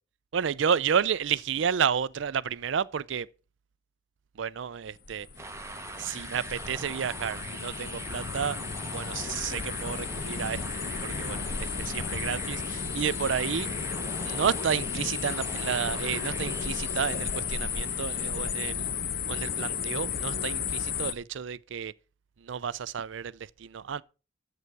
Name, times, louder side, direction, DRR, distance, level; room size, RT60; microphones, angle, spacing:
voice 1, 0.3-3.3 4.4-5.3 6.0-8.6 8.9-10.6 11.0-13.7 14.2-18.9 19.3-21.9 22.4-23.3 23.6-24.0, right 7 dB, 75° right, 0.4 m, -31 dB
sound 1, 4.9-21.1, left 6 dB, 50° left, 0.8 m, -33 dB
sound 2, 5.4-19.1, right 3 dB, 15° right, 0.8 m, -43 dB
11.0 x 8.0 x 4.6 m
head